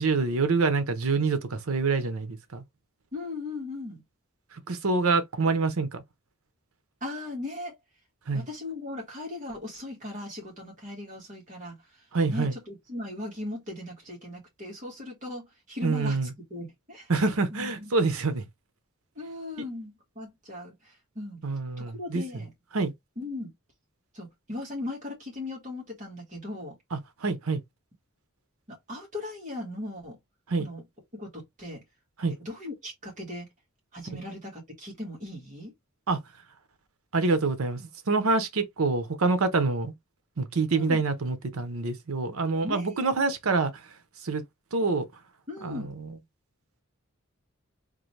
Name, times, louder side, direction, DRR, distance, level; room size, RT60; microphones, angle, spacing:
voice 1, 0.0-2.6 4.5-6.0 8.3-8.5 12.1-12.6 15.8-16.3 17.1-18.5 21.4-22.2 22.7-22.9 26.9-27.6 30.5-30.7 32.2-32.3 36.1-36.2 37.1-39.9 40.4-43.9 44.2-44.4 44.7-45.0 45.6-46.2, right 3 dB, 70° right, 0.8 m, -26 dB
voice 2, 3.1-4.0 7.0-7.8 8.3-11.8 12.3-16.2 16.5-17.1 17.5-17.9 19.2-21.4 21.8-22.5 23.2-23.5 24.1-26.8 28.7-30.2 30.6-30.8 31.1-31.8 32.5-33.5 33.9-35.7 40.7-41.0 42.6-43.1 45.5-45.9, left 2 dB, 35° right, 1.8 m, -38 dB
3.8 x 2.6 x 3.2 m
head